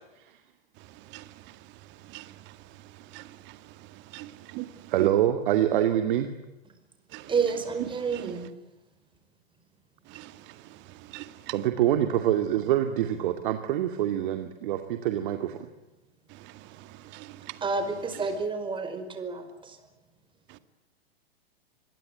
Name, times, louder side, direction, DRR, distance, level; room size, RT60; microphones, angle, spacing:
voice 1, 0.8-4.9 7.1-7.3 8.1-8.4 10.1-11.5 16.3-17.6 20.5-20.6, right 17 dB, 35° right, 2.0 m, -45 dB
voice 2, 4.9-6.3 11.5-15.7, right 11 dB, 55° right, 2.4 m, -25 dB
voice 3, 7.3-8.5 17.6-19.8, right 4 dB, 15° right, 5.1 m, -30 dB
26.0 x 21.5 x 9.3 m
hypercardioid pair, 110°, 31 cm